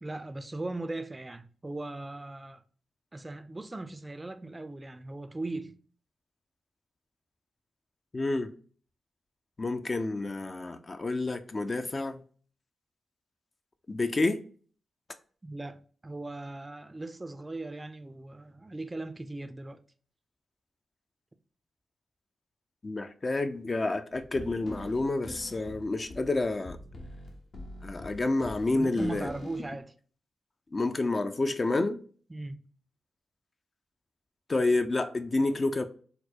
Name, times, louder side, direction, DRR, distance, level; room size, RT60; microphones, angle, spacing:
voice 1, 0.0-2.6 3.1-5.7 15.4-19.8 28.7-29.9 32.3-32.6, right 2 dB, 25° right, 0.4 m, -39 dB
voice 2, 8.1-8.5 9.6-12.2 13.9-14.4 22.8-26.8 27.8-29.3 30.7-32.0 34.5-35.8, left 2 dB, 40° left, 0.4 m, -29 dB
sound 1, 24.1-29.8, left 1 dB, 65° left, 0.9 m, -45 dB
4.1 x 2.1 x 2.8 m
supercardioid pair, 45°, 0 cm